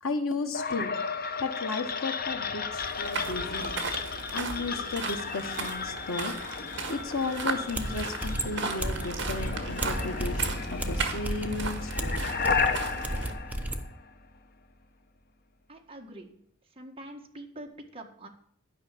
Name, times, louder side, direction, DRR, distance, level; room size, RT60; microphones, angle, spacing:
voice 1, 0.0-1.0 1.4-3.7 4.3-6.3 6.9-12.2, left 3 dB, 80° left, 6 dB, 1.3 m, -34 dB
sound 1, 0.5-14.4, left 5 dB, 45° left, 0.7 m, -34 dB
sound 2, 2.8-13.3, right 4 dB, 60° right, 1.6 m, -37 dB
sound 3, 7.7-13.9, right 1 dB, 5° right, 0.7 m, -33 dB
voice 2, 15.7-16.4 16.6-18.3, right 1 dB, 25° right, 1 dB, 1.6 m, -45 dB
11.5 x 5.5 x 8.4 m, 0.65 s
head